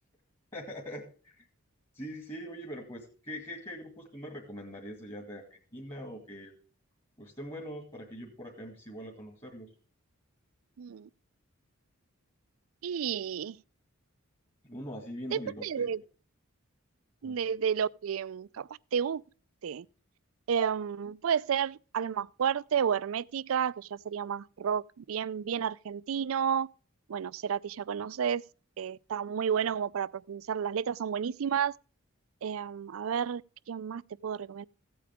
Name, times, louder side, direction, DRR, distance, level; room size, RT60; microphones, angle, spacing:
voice 1, 0.5-1.5 1.9-6.5 7.2-9.7 14.6-15.9 17.2-17.4, equal, 25° left, 2.1 m, -42 dB
voice 2, 10.8-11.1 12.8-13.6 15.3-16.0 17.2-19.2 19.6-19.9 20.5-26.7 27.1-28.4 28.8-31.7 32.4-33.4 33.7-34.6, right 7 dB, 70° right, 0.4 m, -31 dB
15.5 x 8.5 x 3.5 m
head